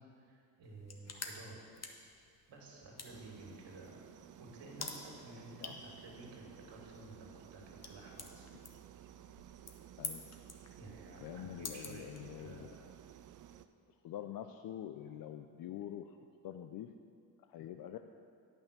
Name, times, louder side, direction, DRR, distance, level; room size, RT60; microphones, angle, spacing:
voice 1, 0.0-1.6 2.5-4.0 4.4-8.5 10.7-12.1 12.4-12.9 15.0-15.1, right 2 dB, 60° right, -1 dB, 2.5 m, -53 dB
sound 1, 0.6-12.7, left 4 dB, 35° left, 1.2 m, -50 dB
sound 2, 3.1-13.7, right 10 dB, 40° right, 0.5 m, -55 dB
voice 2, 11.2-12.7 14.0-16.2 16.4-16.9 17.5-18.0, left 11 dB, 50° left, 7 dB, 0.5 m, -45 dB
9.0 x 5.6 x 6.6 m, 2.4 s
supercardioid pair, 60°, 47 cm